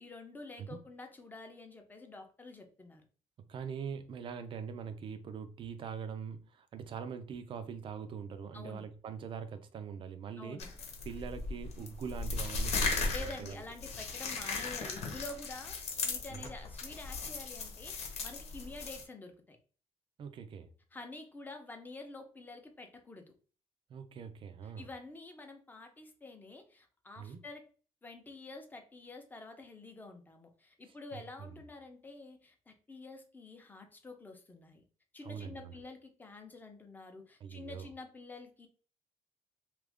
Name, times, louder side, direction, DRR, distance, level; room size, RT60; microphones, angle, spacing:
voice 1, 0.0-3.0 8.5-8.9 10.4-10.7 12.9-19.6 20.9-23.3 24.6-27.7 28.0-34.8 35.1-38.7, left 3 dB, 15° left, 0.7 m, -48 dB
voice 2, 3.5-10.6 11.0-13.6 16.3-16.5 20.2-20.7 23.9-24.9 27.2-27.4 30.9-31.5 35.2-35.8 37.4-37.9, right 7 dB, 45° right, 0.5 m, -43 dB
sound 1, 10.6-19.0, left 4 dB, 65° left, 0.9 m, -37 dB
2.9 x 2.5 x 3.5 m
cardioid pair, 120°, 12 cm